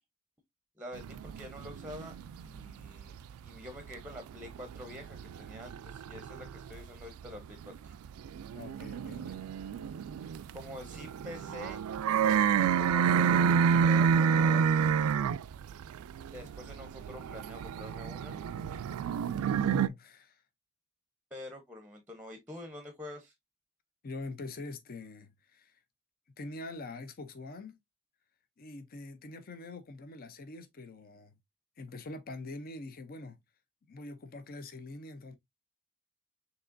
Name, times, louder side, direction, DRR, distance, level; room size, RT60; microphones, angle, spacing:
voice 1, 0.8-3.2 3.4-7.9 10.5-11.8 12.2-14.6 16.3-18.4 21.3-23.3, left 1 dB, 10° right, 0.7 m, -46 dB
sound 1, 1.0-3.9 4.2-6.8 7.2-19.9, right 7 dB, 90° right, 0.3 m, -29 dB
voice 2, 8.5-9.4 19.7-20.4 24.0-25.8 26.4-27.8 28.6-31.3 31.8-33.4 33.9-35.4, left 2 dB, 45° left, 0.6 m, -44 dB
6.4 x 2.9 x 2.5 m
head